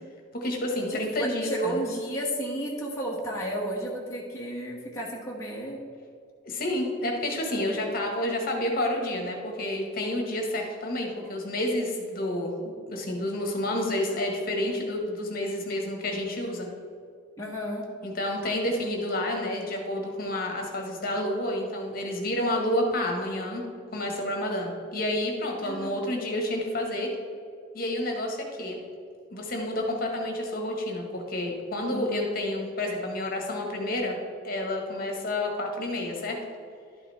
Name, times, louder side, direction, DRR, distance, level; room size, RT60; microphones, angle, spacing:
voice 1, 0.3-1.8 6.4-12.5 12.9-16.7 18.0-27.1 27.7-28.8 29.3-34.2 34.4-36.4, left 1 dB, 45° left, 1 dB, 1.5 m, -29 dB
voice 2, 0.9-5.8 17.4-17.8 25.6-26.0 31.9-32.2, right 1 dB, 15° left, -5 dB, 1.2 m, -32 dB
12.0 x 5.6 x 4.2 m, 2.3 s
head